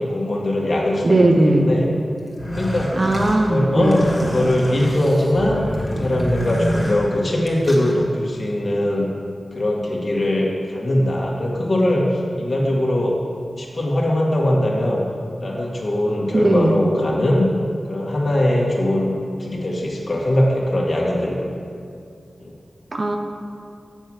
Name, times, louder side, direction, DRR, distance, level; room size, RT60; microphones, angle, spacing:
voice 1, 0.0-1.3 1.5-1.9 2.6-3.0 3.5-9.1 9.5-13.2 13.6-15.0 15.4-17.5 17.9-21.5 22.4-22.5, left 1 dB, 55° left, -3 dB, 1.9 m, -21 dB
voice 2, 1.0-1.7 3.0-4.0 16.3-16.8 22.9-23.2, right 2 dB, 50° right, 3 dB, 1.0 m, -17 dB
sound 1, 2.3-7.9, equal, 25° left, 2.2 m, -27 dB
8.0 x 7.1 x 6.3 m, 2.4 s
wide cardioid pair, 60°, 0 cm